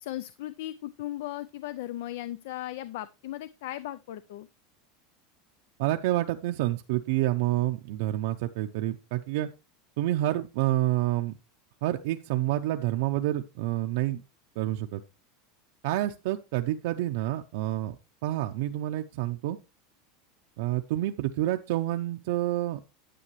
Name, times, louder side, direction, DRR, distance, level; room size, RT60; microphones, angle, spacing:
voice 1, 0.0-4.5, left 14 dB, 70° left, 15 dB, 0.4 m, -37 dB
voice 2, 5.8-9.5 10.0-11.3 11.8-14.2 14.6-15.0 15.8-18.0 18.2-19.6 20.6-22.8, right 15 dB, 65° right, 5 dB, 0.6 m, -28 dB
10.0 x 8.4 x 3.2 m, 0.28 s
supercardioid pair, 160°, 0 cm